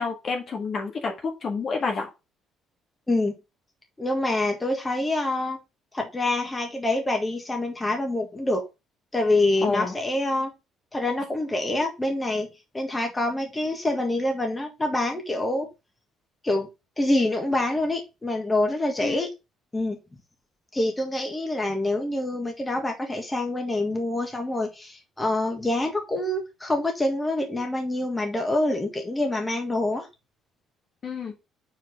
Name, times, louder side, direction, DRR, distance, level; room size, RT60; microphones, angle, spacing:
voice 1, 0.0-2.1 9.6-9.9 19.0-19.2 31.0-31.3, left 4 dB, 45° left, 2 dB, 1.7 m, -29 dB
voice 2, 4.0-5.6 5.9-8.6 9.1-10.5 10.9-12.5 12.7-15.7 16.4-16.7 17.0-19.3 19.7-20.0 20.7-30.1, left 2 dB, 15° left, 2 dB, 1.8 m, -26 dB
4.8 x 4.4 x 5.7 m, 0.26 s
cardioid pair, 100°, 0 cm